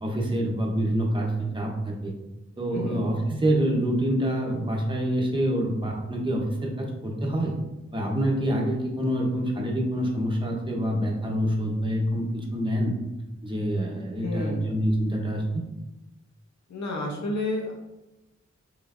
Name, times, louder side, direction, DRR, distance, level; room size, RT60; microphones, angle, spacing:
voice 1, 0.0-2.1 2.6-7.5 7.9-12.9 13.4-15.6, equal, 15° right, -1 dB, 0.9 m, -26 dB
voice 2, 14.0-14.6 16.7-17.7, left 2 dB, 70° left, -1 dB, 0.8 m, -31 dB
5.6 x 3.2 x 2.6 m, 1.0 s
wide cardioid pair, 70°, 29 cm